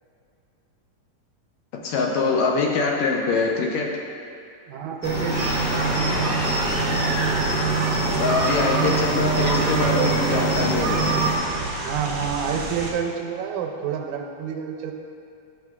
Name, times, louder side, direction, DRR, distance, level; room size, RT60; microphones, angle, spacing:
voice 1, 1.7-4.0 8.1-11.3, left 4 dB, 75° left, 0 dB, 1.8 m, -24 dB
voice 2, 4.7-6.4 11.8-14.9, right 7 dB, 85° right, 3 dB, 2.0 m, -29 dB
Cricket, 5.0-11.4, right 3 dB, 60° left, 0.9 m, -24 dB
sound 1, 5.3-12.9, right 3 dB, 70° right, 1.3 m, -28 dB
9.6 x 6.7 x 2.4 m, 2.6 s
omnidirectional pair, 3.4 m